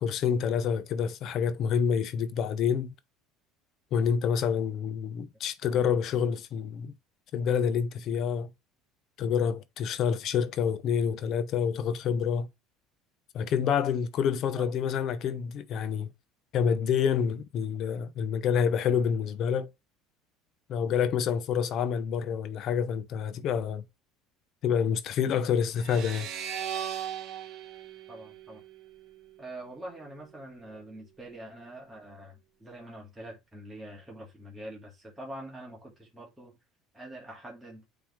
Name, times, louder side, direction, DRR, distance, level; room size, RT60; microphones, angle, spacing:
voice 1, 0.0-2.9 3.9-6.9 7.3-8.5 9.2-12.5 13.3-16.1 16.5-19.7 20.7-23.8 24.6-26.3, left 7 dB, 55° left, 0.8 m, -28 dB
sound 1, 25.8-29.1, right 9 dB, 60° right, 1.1 m, -38 dB
voice 2, 28.1-28.6 29.4-36.6 36.9-37.9, right 1 dB, 10° right, 2.0 m, -44 dB
8.6 x 3.5 x 3.2 m
supercardioid pair, 90°, 0 cm